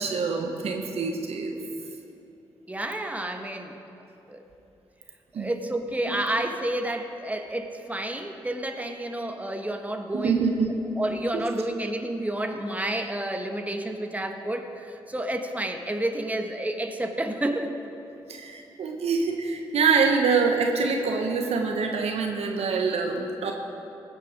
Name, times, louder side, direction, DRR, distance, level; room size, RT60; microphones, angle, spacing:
voice 1, 0.0-1.5 5.3-5.5 6.1-6.2 10.1-10.7 11.3-11.4 18.3-23.5, right 5 dB, 70° right, 3 dB, 1.1 m, -25 dB
voice 2, 2.7-3.8 4.3-4.4 5.4-10.4 11.0-17.7, right 1 dB, 15° right, 4 dB, 1.3 m, -30 dB
17.5 x 6.7 x 5.1 m, 2.8 s
hypercardioid pair, 40°, 11 cm